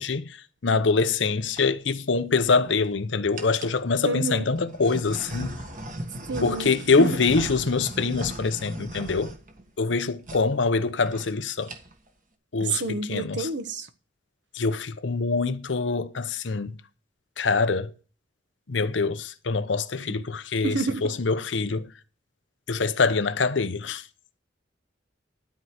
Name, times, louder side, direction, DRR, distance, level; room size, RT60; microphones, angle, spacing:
voice 1, 0.0-5.5 6.4-9.3 9.8-11.7 12.5-13.5 14.5-16.7 17.4-17.9 18.7-21.9 22.7-24.0, left 4 dB, 85° left, 0.7 m, -25 dB
sound 1, 1.2-1.6 2.3-2.9 3.3-3.8 4.5-10.0 10.2-10.4 10.7-10.8 11.0-11.3 11.6-12.1, right 1 dB, 45° right, 1.6 m, -37 dB
voice 2, 4.0-4.4 6.3-6.7 7.0-7.1 12.6-13.9 20.6-21.0, right 3 dB, 75° right, 1.2 m, -28 dB
12.5 x 4.7 x 8.0 m
head